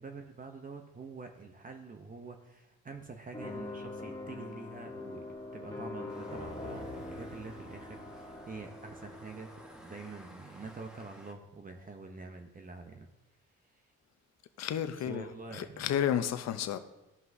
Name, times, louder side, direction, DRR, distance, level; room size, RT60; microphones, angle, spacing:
voice 1, 0.0-5.2 5.5-13.1 13.7-13.8 15.1-15.8, right 4 dB, 30° right, 0.8 m, -46 dB
sound 1, 3.3-10.4, left 2 dB, 15° left, 1.7 m, -43 dB
sound 2, 6.1-11.3, equal, ahead, 1.1 m, -55 dB
voice 2, 14.6-15.3 15.5-16.8, left 10 dB, 60° left, 0.6 m, -31 dB
13.5 x 5.5 x 2.7 m
cardioid pair, 90°, 30 cm